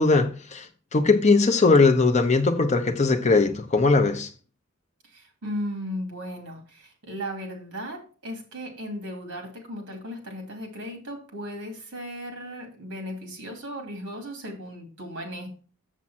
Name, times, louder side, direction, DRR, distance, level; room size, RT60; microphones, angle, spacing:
voice 1, 0.0-4.3, left 3 dB, 30° left, 0.7 m, -20 dB
voice 2, 5.1-15.5, equal, 55° right, 2.7 m, -36 dB
7.3 x 7.3 x 4.3 m
head